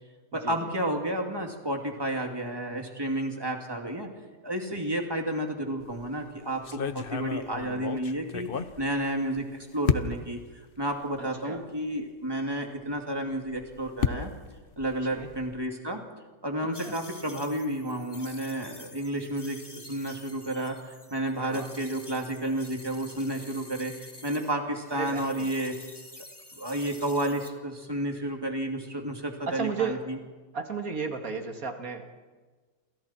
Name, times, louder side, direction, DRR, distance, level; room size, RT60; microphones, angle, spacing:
voice 1, 0.3-4.1 4.4-10.4 10.8-14.3 14.8-16.0 16.4-25.8 26.5-30.2, right 1 dB, 15° right, 2 dB, 2.5 m, -31 dB
sound 1, 5.8-6.1 6.6-9.4 9.9-10.4 11.1-11.2 11.6-11.7 13.3-15.6, left 6 dB, 40° left, 0.9 m, -32 dB
voice 2, 11.2-11.6 15.1-15.3 16.8-17.0 21.4-21.7 25.0-25.5 29.5-30.0 30.5-32.1, right 5 dB, 55° right, 5 dB, 2.5 m, -34 dB
sound 2, 16.7-24.5 24.8-27.5, left 2 dB, 15° left, 1.6 m, -48 dB
28.5 x 28.0 x 4.5 m, 1.4 s
omnidirectional pair, 1.8 m